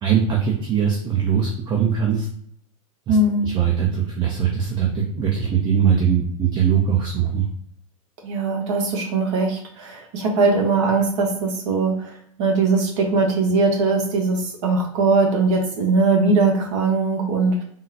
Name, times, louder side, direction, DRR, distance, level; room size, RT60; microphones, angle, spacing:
voice 1, 0.0-2.3 3.1-3.2 3.4-7.5, right 8 dB, 25° right, 0 dB, 0.5 m, -21 dB
voice 2, 3.1-3.4 8.2-17.6, right 3 dB, 55° right, 1 dB, 1.0 m, -20 dB
3.6 x 2.1 x 2.7 m, 0.68 s
hypercardioid pair, 105°, 18 cm